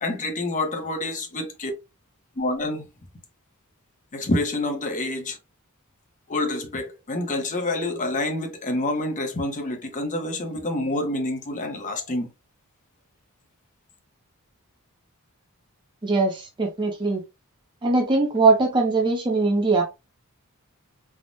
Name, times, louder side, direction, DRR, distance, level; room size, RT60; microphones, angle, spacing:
voice 1, 0.0-1.7 2.4-2.9 4.1-5.4 6.3-12.3, left 2 dB, 35° left, 0.7 m, -27 dB
voice 2, 16.0-17.2 17.8-19.8, right 3 dB, 20° right, 0.6 m, -21 dB
3.5 x 2.1 x 2.5 m
head